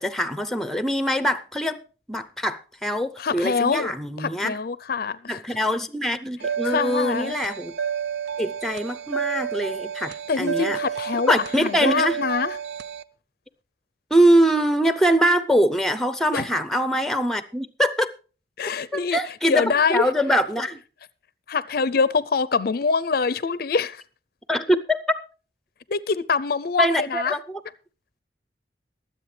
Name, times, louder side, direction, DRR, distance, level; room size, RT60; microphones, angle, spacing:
voice 1, 0.0-4.6 5.3-7.7 8.4-10.8 11.3-12.2 14.1-18.1 18.9-20.8 24.5-25.2 26.8-27.6, equal, ahead, 0.6 m, -23 dB
voice 2, 3.2-3.9 4.2-5.6 6.6-7.4 10.3-12.6 16.3-16.5 18.6-20.0 21.5-24.0 25.9-27.3, left 5 dB, 55° left, 0.5 m, -24 dB
sound 1, 6.4-13.0, right 8 dB, 75° right, 0.5 m, -30 dB
23.0 x 7.8 x 3.3 m
head